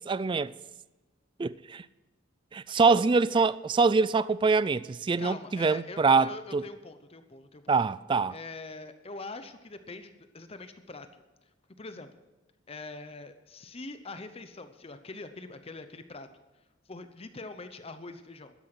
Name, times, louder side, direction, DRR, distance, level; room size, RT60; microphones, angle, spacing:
voice 1, 0.1-0.5 1.4-1.8 2.5-6.6 7.7-8.4, right 4 dB, 25° right, 0.3 m, -24 dB
voice 2, 2.7-3.0 5.2-7.7 8.3-11.2 11.8-12.1 12.7-16.3 16.9-18.5, left 3 dB, 30° left, 0.8 m, -43 dB
13.0 x 10.0 x 5.9 m
head